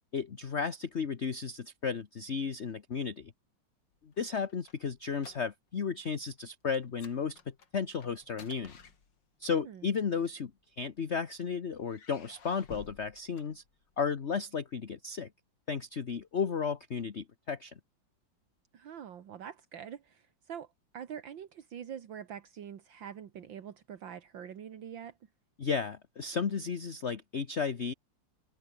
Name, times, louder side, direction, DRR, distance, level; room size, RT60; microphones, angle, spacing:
voice 1, 0.1-3.3 4.0-8.8 9.4-10.5 10.8-13.6 14.0-15.3 15.7-17.7 25.6-27.9, left 6 dB, 40° left, 1.3 m, -34 dB
sound 1, 3.9-5.8 6.1-6.3 6.7-9.5 10.4-11.3 11.8-14.1, left 6 dB, 65° left, 3.0 m, -54 dB
voice 2, 9.5-9.9 18.7-20.7 20.9-25.2, right 8 dB, 75° right, 2.2 m, -45 dB
omnidirectional pair, 2.1 m